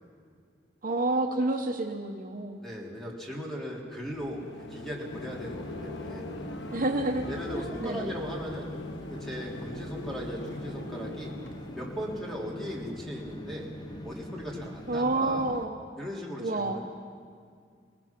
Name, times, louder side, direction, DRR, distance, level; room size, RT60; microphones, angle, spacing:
voice 1, 0.8-2.6 6.7-7.2 7.5-8.2 14.9-15.8 16.4-16.8, right 2 dB, 50° right, 3 dB, 1.0 m, -29 dB
voice 2, 2.6-4.4 4.7-6.3 7.3-8.7 9.1-11.3 11.7-13.7 14.0-15.4 16.0-16.8, equal, ahead, -3 dB, 3.3 m, -38 dB
sound 1, 4.0-13.0, left 1 dB, 70° left, 1.1 m, -42 dB
sound 2, 5.1-15.7, left 1 dB, 25° left, 0.8 m, -42 dB
26.5 x 19.0 x 6.0 m, 2.1 s
head